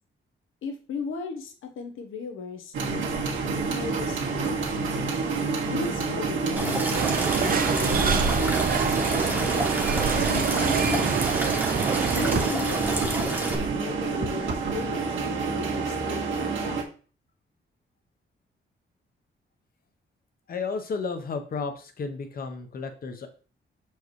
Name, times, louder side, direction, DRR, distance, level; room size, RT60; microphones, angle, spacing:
voice 1, 0.6-3.1 3.5-5.2 5.7-9.7 10.1-11.2 12.0-16.8, left 4 dB, 85° left, 5 dB, 1.0 m, -37 dB
sound 1, 2.7-16.8, right 4 dB, 70° right, 1.7 m, -28 dB
sound 2, 6.6-13.6, right 1 dB, 10° right, 1.1 m, -29 dB
sound 3, 6.9-12.5, right 7 dB, 45° right, 0.5 m, -27 dB
voice 2, 20.5-23.3, left 4 dB, 45° left, 7 dB, 0.9 m, -32 dB
6.8 x 4.6 x 3.2 m, 0.39 s
wide cardioid pair, 170°, 20 cm